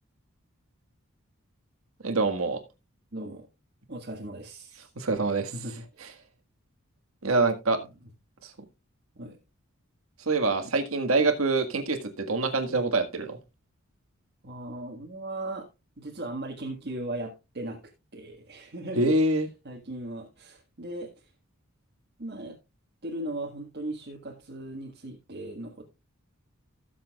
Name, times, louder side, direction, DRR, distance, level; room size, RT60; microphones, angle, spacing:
voice 1, 2.0-2.6 5.0-5.5 7.2-7.8 8.4-8.5 10.2-13.4 19.0-19.5, right 3 dB, 75° right, 1.7 m, -25 dB
voice 2, 3.1-3.5 3.9-4.9 5.5-6.1 7.8-7.9 9.1-9.4 10.6-10.7 14.4-15.7 16.0-17.8 18.1-19.2 19.6-21.1 22.2-22.6 23.0-25.8, right 1 dB, 50° right, 1.6 m, -38 dB
17.0 x 7.2 x 2.4 m
head